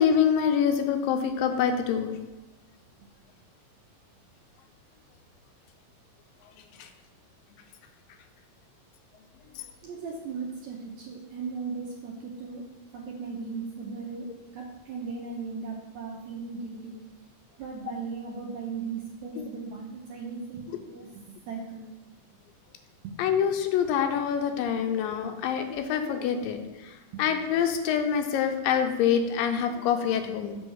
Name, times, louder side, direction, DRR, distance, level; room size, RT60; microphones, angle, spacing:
voice 1, 0.0-2.1 23.2-26.6 27.2-30.5, left 8 dB, 90° left, 6 dB, 2.4 m, -25 dB
voice 2, 9.8-12.6 12.9-14.3 14.5-17.0 17.6-21.8 23.0-23.2 27.1-27.2, right 5 dB, 75° right, -1 dB, 1.7 m, -37 dB
7.6 x 3.3 x 6.2 m, 1.0 s
omnidirectional pair, 3.9 m